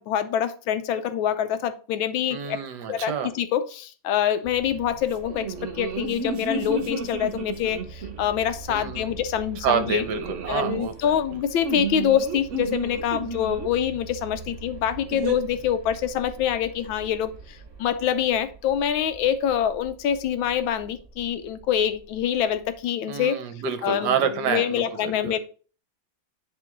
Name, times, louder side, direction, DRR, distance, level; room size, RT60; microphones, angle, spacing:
voice 1, 0.0-1.5 1.9-2.4 2.9-3.1 3.5-3.6 4.1-5.4 5.8-7.8 8.2-10.0 10.5-14.4 14.6-17.3 17.8-20.9 21.2-22.6 22.8-23.3 23.8-24.1 24.4-25.4, left 9 dB, 85° left, 1.4 m, -25 dB
voice 2, 2.3-3.3 8.7-9.1 9.6-11.2 23.1-25.4, right 7 dB, 65° right, 1.2 m, -28 dB
sound 1, 4.4-22.8, right 5 dB, 15° right, 1.6 m, -44 dB
sound 2, 5.2-8.3 9.7-10.8 11.6-13.7 15.1-15.4, right 3 dB, 50° right, 0.9 m, -32 dB
10.5 x 3.6 x 3.8 m
omnidirectional pair, 2.1 m